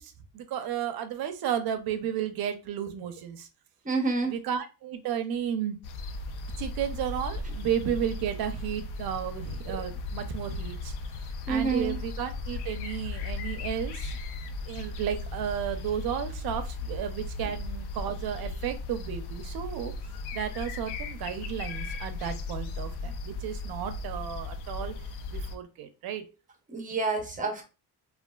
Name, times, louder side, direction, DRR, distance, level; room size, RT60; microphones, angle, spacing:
voice 1, 0.0-3.5 4.2-5.8 6.6-10.9 11.5-14.2 14.6-19.9 20.3-24.9 25.3-26.3, right 9 dB, 65° right, 9 dB, 0.6 m, -33 dB
voice 2, 3.8-4.3 11.5-12.0 26.7-27.7, right 4 dB, 20° right, 3 dB, 0.7 m, -28 dB
sound 1, 5.8-25.6, left 2 dB, 80° left, 0.5 m, -36 dB
3.2 x 2.4 x 2.2 m, 0.31 s
cardioid pair, 145°, 40 cm